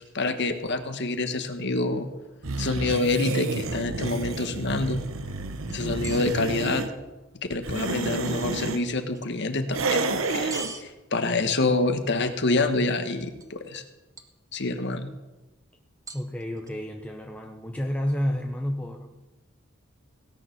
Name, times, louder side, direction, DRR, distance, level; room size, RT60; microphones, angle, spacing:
voice 1, 0.1-2.1 2.6-5.0 5.7-6.8 7.5-13.8 14.5-15.1, left 2 dB, 60° left, 8 dB, 1.4 m, -27 dB
sound 1, 2.4-6.9 7.5-8.8 9.7-10.7, right 3 dB, 85° right, 1.1 m, -30 dB
sound 2, 5.7-6.4 9.1-9.3 10.5-10.8 13.4-13.5 13.8-13.9 14.2-14.8 16.1-16.7, right 3 dB, 15° right, 1.1 m, -40 dB
voice 2, 16.1-19.1, equal, 5° left, 1 dB, 0.8 m, -30 dB
17.5 x 9.6 x 6.0 m, 1.1 s
head